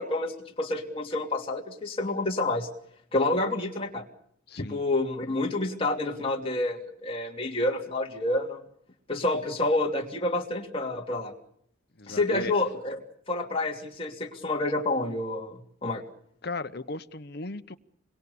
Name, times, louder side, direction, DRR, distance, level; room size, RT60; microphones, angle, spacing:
voice 1, 0.0-2.7 3.1-4.0 4.6-8.6 9.1-11.3 12.1-13.0 13.3-16.0, left 2 dB, 30° left, 2.8 m, -28 dB
voice 2, 4.5-4.8 12.0-12.5 16.4-17.8, left 2 dB, 50° left, 1.0 m, -36 dB
27.0 x 22.5 x 7.0 m
head